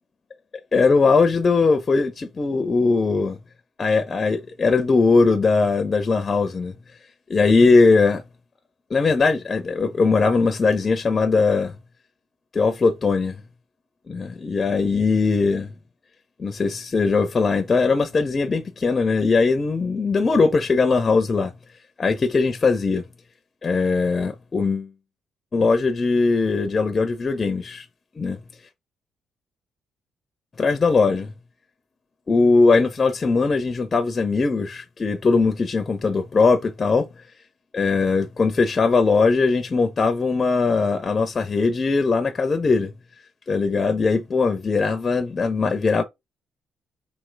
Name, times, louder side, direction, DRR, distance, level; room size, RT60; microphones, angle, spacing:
voice 1, 0.7-3.4 3.8-6.7 7.3-8.2 8.9-11.7 12.5-13.4 14.1-15.7 16.4-21.5 22.0-23.0 23.6-24.9 25.5-27.9 28.2-28.4 30.6-31.3 32.3-37.1 37.7-42.9 43.5-46.0, left 4 dB, 35° left, 0.6 m, -20 dB
4.5 x 2.9 x 3.9 m
cardioid pair, 90°, 0 cm